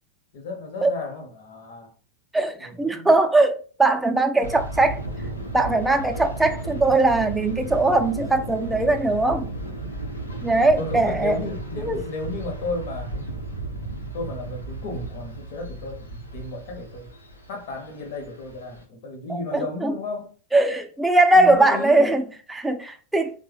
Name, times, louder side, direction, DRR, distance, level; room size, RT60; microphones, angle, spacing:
voice 1, 0.3-1.9 2.6-3.1 8.5-8.6 10.8-13.2 14.1-17.1 17.5-20.3 21.3-22.3, left 2 dB, 50° left, 0.8 m, -34 dB
voice 2, 2.3-5.0 5.5-9.5 10.4-11.4 11.8-12.0 19.3-20.0 20.5-22.2 22.5-23.3, right 2 dB, 5° right, 0.4 m, -20 dB
sound 1, 4.4-18.8, right 2 dB, 80° left, 0.8 m, -34 dB
3.3 x 2.1 x 3.2 m
figure-of-eight pair, 90°, 0 cm